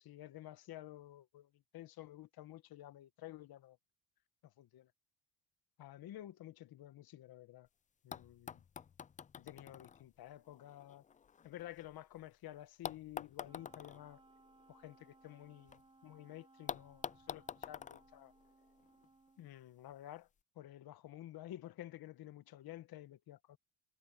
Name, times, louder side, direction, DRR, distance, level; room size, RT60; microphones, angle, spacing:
voice 1, 0.0-3.8 4.4-4.9 5.8-7.7 8.0-8.6 9.4-11.0 11.4-14.2 14.7-18.3 19.4-20.3 20.5-23.6, left 14 dB, 60° left, 1.2 m, -52 dB
sound 1, 7.7-7.8 8.1-12.2 12.8-15.8 16.1-16.2 16.7-19.1 20.1-20.2, left 7 dB, 20° left, 0.3 m, -48 dB
Wind instrument woodwind instrument, 13.4-19.5, right 3 dB, 10° right, 1.1 m, -66 dB
cardioid pair, 95°, 43 cm